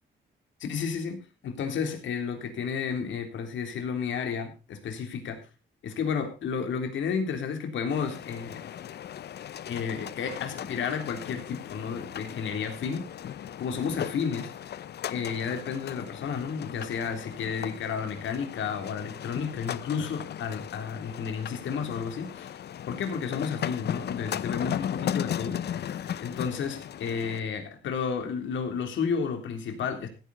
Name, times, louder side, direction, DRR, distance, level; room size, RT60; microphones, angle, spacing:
voice 1, 0.6-1.2 1.4-5.4 5.8-8.6 9.7-13.1 13.3-14.5 15.1-25.6 26.2-30.1, left 6 dB, 70° left, 5 dB, 3.4 m, -32 dB
sound 1, 7.9-27.4, left 10 dB, 55° left, 0.7 m, -37 dB
16.0 x 9.7 x 4.2 m, 0.31 s
cardioid pair, 90°, 20 cm